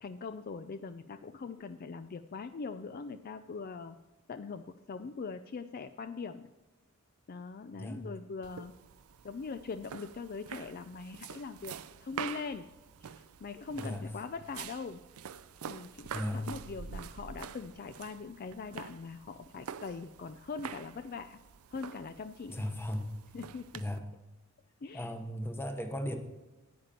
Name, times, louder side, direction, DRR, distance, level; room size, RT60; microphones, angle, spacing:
voice 1, 0.0-4.0 4.3-6.5 7.3-8.7 9.2-11.7 12.0-12.6 13.0-15.0 15.7-21.4 21.7-22.7 23.3-23.8 24.8-25.1, left 4 dB, 45° left, 10 dB, 0.4 m, -42 dB
voice 2, 7.7-8.0 13.8-14.0 16.1-16.5 22.5-23.2 23.7-24.0 24.9-26.2, left 1 dB, 10° left, 6 dB, 1.0 m, -36 dB
sound 1, 8.4-24.0, right 7 dB, 85° right, 0.5 m, -46 dB
10.5 x 8.9 x 4.3 m, 1.1 s
head